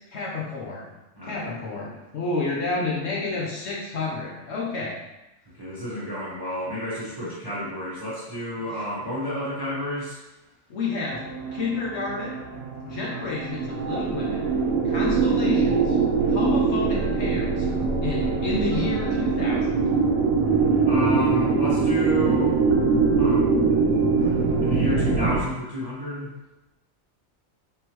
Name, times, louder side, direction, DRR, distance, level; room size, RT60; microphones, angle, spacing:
voice 1, 0.1-0.9 1.2-5.0 7.2-7.6 8.6-8.7 10.7-12.4 12.8-14.5 14.8-16.0 16.3-17.7 18.0-19.7, left 3 dB, 60° left, -4 dB, 1.0 m, -30 dB
voice 2, 1.2-1.6 5.6-10.2 20.9-22.6 23.2-23.5 24.2-26.3, equal, 20° right, -8 dB, 0.8 m, -30 dB
sound 1, 11.1-25.4, right 4 dB, 85° right, 1.0 m, -23 dB
3.7 x 3.0 x 2.9 m, 0.97 s
omnidirectional pair, 1.4 m